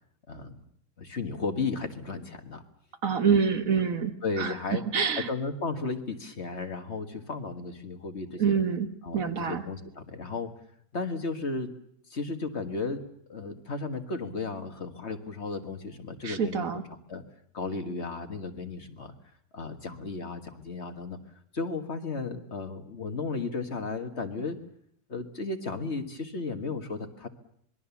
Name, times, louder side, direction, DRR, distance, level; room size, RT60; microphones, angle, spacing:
voice 1, 0.3-0.6 1.0-2.6 4.2-4.8 5.2-8.6 9.0-10.5 10.9-11.7 12.1-13.0 13.3-16.7 17.1-17.2 17.5-19.1 19.5-21.2 21.5-24.6 25.1-27.3, left 4 dB, 45° left, 7 dB, 1.8 m, -34 dB
voice 2, 3.0-5.3 8.4-9.6 16.2-16.8, right 6 dB, 60° right, 8 dB, 1.7 m, -27 dB
26.5 x 21.0 x 7.1 m, 0.67 s
omnidirectional pair, 1.6 m